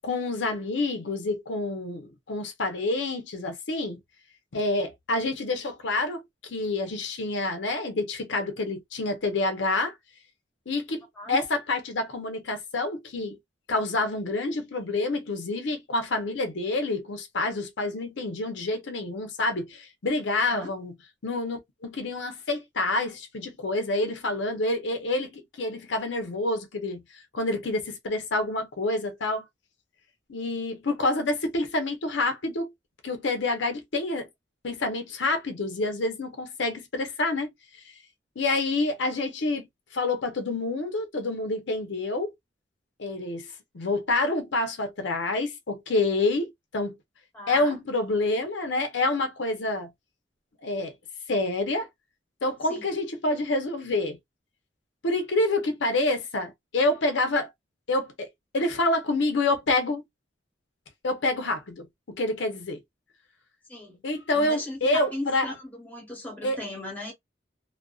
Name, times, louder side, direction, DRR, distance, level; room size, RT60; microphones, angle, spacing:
voice 1, 0.0-4.0 4.5-9.9 10.7-11.0 11.3-13.4 13.7-20.9 21.2-27.0 27.3-29.4 30.3-32.7 33.0-34.3 34.6-37.5 38.4-39.7 39.9-42.3 43.0-43.5 43.7-46.5 46.7-46.9 47.5-49.9 50.6-50.9 51.3-51.9 52.4-54.2 55.0-57.5 57.9-58.3 58.5-60.0 61.0-62.8 64.0-65.5 66.4-66.6, left 2 dB, 75° left, 0.7 m, -27 dB
voice 2, 47.3-47.8 52.7-52.9 63.7-64.0 64.3-67.1, left 1 dB, 10° left, 0.9 m, -37 dB
2.5 x 2.2 x 2.3 m
head